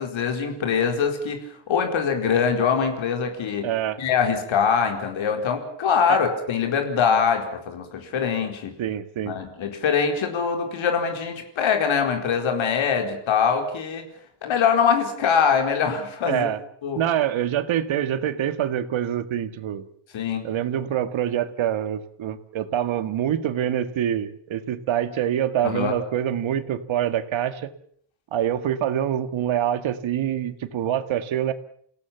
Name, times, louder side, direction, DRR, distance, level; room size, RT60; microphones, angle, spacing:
voice 1, 0.0-1.4 1.7-3.7 4.0-8.8 9.3-14.0 14.4-16.5 16.8-17.0 20.1-20.5 25.6-25.9, left 6 dB, 65° left, 4 dB, 4.5 m, -23 dB
voice 2, 3.6-4.0 6.1-6.2 8.8-9.3 16.3-16.6 17.0-19.9 20.4-27.7 28.3-31.5, right 10 dB, 65° right, 10 dB, 2.0 m, -25 dB
29.0 x 17.0 x 7.2 m, 0.63 s
cardioid pair, 160°, 50 cm